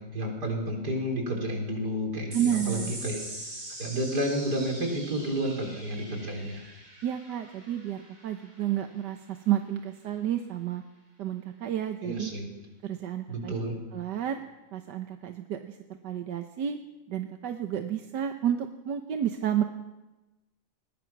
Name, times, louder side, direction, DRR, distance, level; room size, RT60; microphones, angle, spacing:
voice 1, 0.0-3.2 3.8-6.6 12.0-12.6 13.3-13.7, equal, 70° right, 2 dB, 4.7 m, -31 dB
sound 1, 2.3-9.1, right 1 dB, 50° right, 4.7 m, -43 dB
voice 2, 2.3-2.9 7.0-10.8 11.2-12.3 12.8-13.5 13.9-14.4 14.7-16.8 17.1-19.6, right 10 dB, 90° right, 6 dB, 1.7 m, -31 dB
21.0 x 20.5 x 6.1 m, 1.1 s
omnidirectional pair, 1.8 m